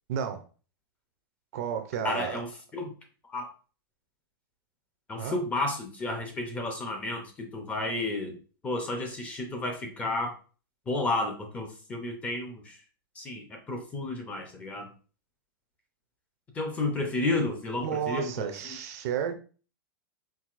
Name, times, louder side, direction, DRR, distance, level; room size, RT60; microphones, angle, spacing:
voice 1, 0.1-0.4 1.5-2.4 5.2-5.4 17.8-19.3, right 8 dB, 40° right, 0.5 m, -32 dB
voice 2, 2.0-2.5 2.7-2.9 3.3-3.5 5.1-8.4 8.6-10.3 10.9-12.8 13.2-14.9 16.5-18.8, left 2 dB, 10° left, 0.5 m, -32 dB
4.6 x 3.8 x 2.5 m
supercardioid pair, 170°, 12 cm